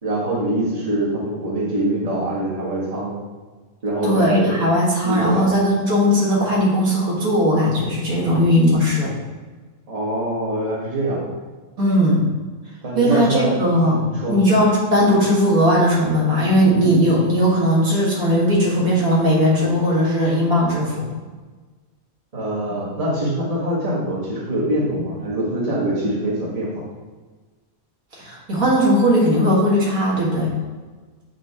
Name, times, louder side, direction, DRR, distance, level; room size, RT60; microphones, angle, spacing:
voice 1, 0.0-3.1 3.8-4.6 5.0-5.5 9.9-11.3 12.8-13.5 13.8-14.4 22.3-26.7, right 1 dB, 25° right, -6 dB, 1.6 m, -23 dB
voice 2, 4.0-9.1 11.8-12.2 12.9-14.0 14.3-21.1 28.1-30.5, equal, 80° right, -5 dB, 2.3 m, -18 dB
7.3 x 6.0 x 3.0 m, 1.3 s
omnidirectional pair, 1.5 m